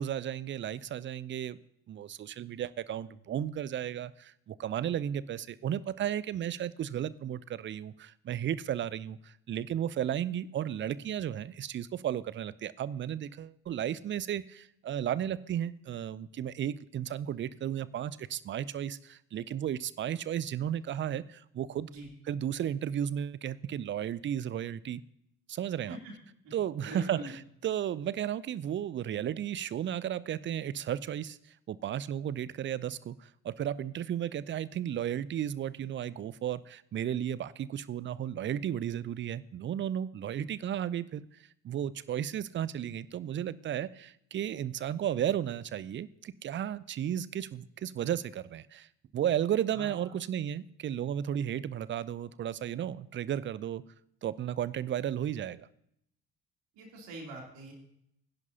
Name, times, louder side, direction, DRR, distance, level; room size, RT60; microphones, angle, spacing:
voice 1, 0.0-1.6 1.9-21.9 22.3-25.0 25.5-26.0 26.5-27.3 27.6-31.4 31.7-41.2 41.6-48.9 49.1-53.8 54.2-55.7, right 10 dB, 25° right, 19 dB, 0.5 m, -34 dB
voice 2, 26.8-27.3 49.7-50.1 56.7-57.7, right 2 dB, 60° right, -1 dB, 3.2 m, -44 dB
19.5 x 10.5 x 2.8 m, 0.74 s
figure-of-eight pair, 50°, 49 cm